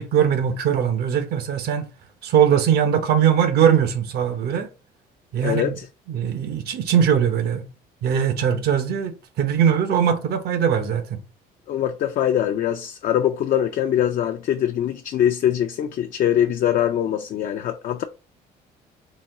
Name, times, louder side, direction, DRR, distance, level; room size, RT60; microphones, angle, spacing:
voice 1, 0.0-1.9 2.2-4.7 5.3-5.7 6.1-7.6 8.0-11.2, right 8 dB, 70° right, 0.8 m, -20 dB
voice 2, 5.4-5.9 11.7-18.0, left 10 dB, 55° left, 0.4 m, -22 dB
4.2 x 2.2 x 3.7 m
cardioid pair, 110°, 17 cm